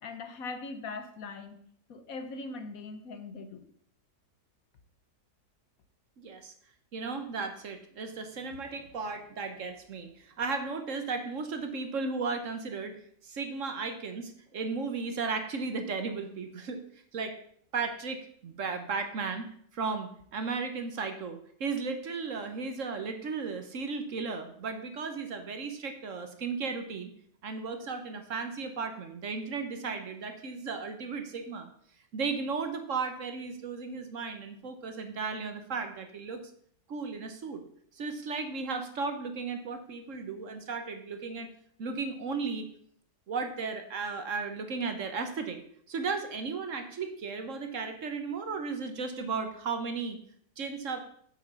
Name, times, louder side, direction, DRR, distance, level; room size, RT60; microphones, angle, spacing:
voice 1, 0.0-1.6 1.9-3.6, left 3 dB, 65° left, 8 dB, 1.4 m, -40 dB
voice 2, 6.2-6.5 6.9-13.0 13.2-16.8 17.1-17.4 17.7-19.5 19.7-27.1 27.4-31.7 32.1-36.4 36.9-37.6 38.0-41.5 41.8-42.6 43.3-45.6 45.9-50.2 50.6-51.1, right 4 dB, 55° right, 7 dB, 1.3 m, -35 dB
7.8 x 7.4 x 5.5 m, 0.63 s
omnidirectional pair, 1.7 m